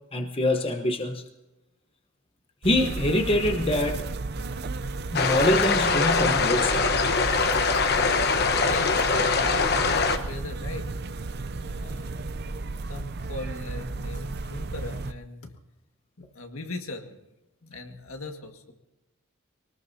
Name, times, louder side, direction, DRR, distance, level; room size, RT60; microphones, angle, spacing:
voice 1, 0.1-1.2 2.6-4.1 5.1-6.8, left 1 dB, 25° left, 5 dB, 1.0 m, -24 dB
sound 1, 2.6-15.1, right 3 dB, 50° right, 0.5 m, -34 dB
sound 2, 5.1-10.2, left 4 dB, 50° left, 1.1 m, -23 dB
voice 2, 8.5-10.9 11.6-12.1 12.9-15.5 16.2-17.2 17.6-18.7, left 2 dB, 80° left, 4 dB, 1.8 m, -39 dB
24.0 x 19.0 x 2.8 m, 1.0 s
head